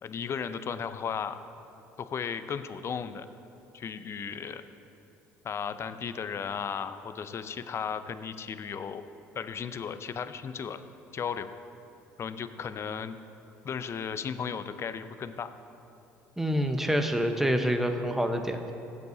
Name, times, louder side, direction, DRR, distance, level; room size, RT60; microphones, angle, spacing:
voice 1, 0.0-1.4 2.0-3.3 3.7-4.6 5.4-9.0 9.3-10.8 11.1-11.5 12.2-13.2 13.6-15.5, left 7 dB, 45° left, 11 dB, 0.6 m, -35 dB
voice 2, 16.4-18.7, equal, 5° right, 5 dB, 1.0 m, -27 dB
16.0 x 8.0 x 2.8 m, 2.8 s
hypercardioid pair, 70°, 7 cm